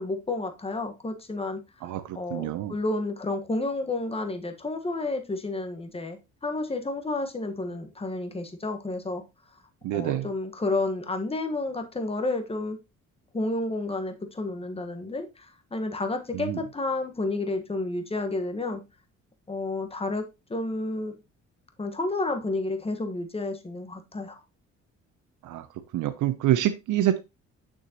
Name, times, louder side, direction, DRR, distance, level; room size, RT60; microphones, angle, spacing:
voice 1, 0.0-1.6 2.1-9.2 9.9-12.8 13.3-18.8 19.5-21.1 21.8-24.4, left 2 dB, 20° left, 6 dB, 1.4 m, -31 dB
voice 2, 1.8-2.7 9.8-10.3 16.3-16.6 25.4-25.7 25.9-27.2, right 12 dB, 80° right, 11 dB, 0.7 m, -26 dB
6.5 x 6.3 x 2.9 m, 0.25 s
cardioid pair, 90°, 30 cm